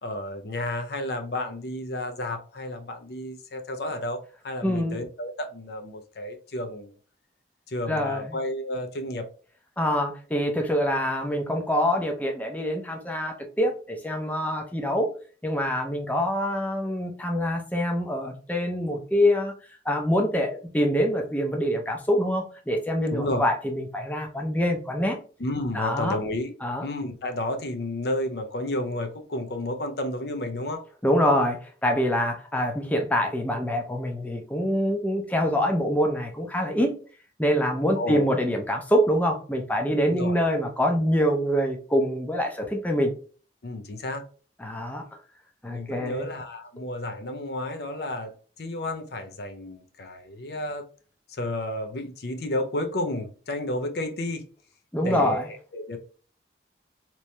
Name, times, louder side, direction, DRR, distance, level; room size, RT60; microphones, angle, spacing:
voice 1, 0.0-6.9 7.7-9.3 23.1-23.4 25.4-26.5 26.8-30.8 38.0-38.4 40.1-40.4 43.6-44.2 45.7-48.3 48.6-50.8 51.4-54.4 55.0-55.4 55.7-56.0, left 1 dB, 65° left, 0.5 m, -31 dB
voice 2, 4.6-5.0 7.9-8.4 9.8-15.1 15.4-19.5 19.9-25.2 25.7-26.2 26.6-26.9 31.0-36.9 37.4-43.1 44.6-45.1 45.6-46.3 54.9-55.5, equal, 10° left, 0.5 m, -25 dB
3.0 x 2.7 x 3.2 m
head